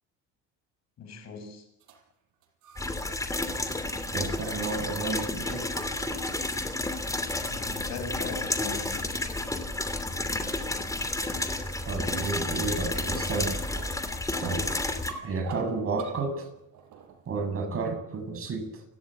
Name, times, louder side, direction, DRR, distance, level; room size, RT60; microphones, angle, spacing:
voice 1, 1.0-1.7 7.5-9.1, left 4 dB, 55° left, 6.9 m, -39 dB
sound 1, 1.8-3.1 3.4-3.8 4.5-5.1 5.4-6.7 7.5-7.6 8.0-8.1 8.7-9.1 9.4-9.6 10.1-17.6, right 6 dB, 65° right, 6.4 m, -48 dB
sound 2, 2.8-15.1, left 2 dB, 10° left, 3.0 m, -31 dB
voice 2, 4.1-5.7 11.8-13.6 14.3-14.6 15.2-16.5 17.3-18.8, right 3 dB, 45° right, 7.7 m, -31 dB
30.0 x 13.5 x 9.3 m
cardioid pair, 110°, 33 cm